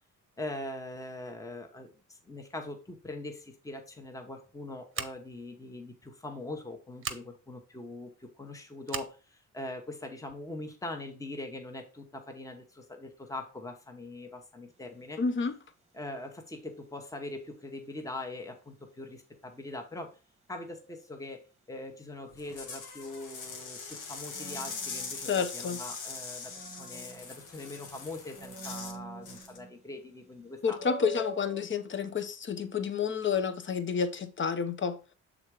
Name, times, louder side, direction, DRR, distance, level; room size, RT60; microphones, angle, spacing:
voice 1, 0.4-15.2 15.9-20.2 20.5-21.4 21.7-30.8, left 2 dB, 10° left, 1.1 m, -42 dB
Scissors, 4.9-5.4 7.0-7.2 8.8-9.1, right 7 dB, 45° right, 0.8 m, -37 dB
sound 1, 14.7-15.0 24.3-25.8 26.2-27.8 28.3-29.9 30.2-30.3 30.7-31.6, right 1 dB, 20° right, 1.2 m, -46 dB
voice 2, 15.2-15.5 25.3-25.8 30.6-35.0, left 6 dB, 40° left, 0.9 m, -30 dB
sound 2, 22.3-29.0 29.3-29.6, left 4 dB, 80° left, 1.5 m, -42 dB
6.4 x 3.7 x 4.7 m
cardioid pair, 90°, 30 cm